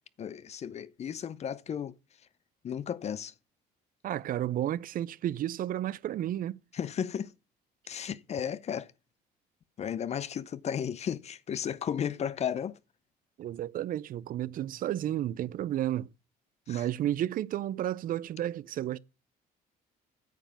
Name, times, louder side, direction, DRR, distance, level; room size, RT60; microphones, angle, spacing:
voice 1, 0.2-1.9 2.6-3.3 6.7-7.3 7.9-8.9 9.8-12.8 16.7-16.8, left 8 dB, 40° left, 0.6 m, -34 dB
voice 2, 4.0-6.6 13.4-16.1 16.7-19.0, right 12 dB, 55° right, 0.5 m, -32 dB
9.2 x 7.2 x 7.1 m
cardioid pair, 110°, 17 cm